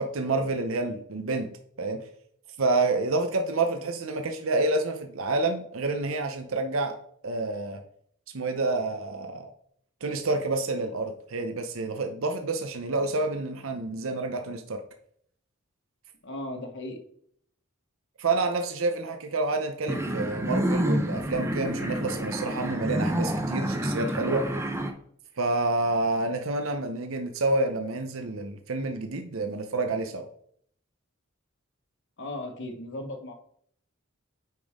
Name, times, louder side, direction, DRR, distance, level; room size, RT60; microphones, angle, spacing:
voice 1, 0.0-1.5 1.8-2.0 2.6-7.0 7.2-7.8 8.3-9.5 10.0-14.8 18.2-24.5 25.4-30.3, right 2 dB, 70° right, 6 dB, 0.7 m, -28 dB
voice 2, 16.2-17.0 32.2-33.3, left 1 dB, 60° left, 4 dB, 1.4 m, -36 dB
sound 1, 19.9-24.9, equal, 15° right, 0.8 m, -28 dB
9.1 x 5.3 x 3.6 m, 0.65 s
head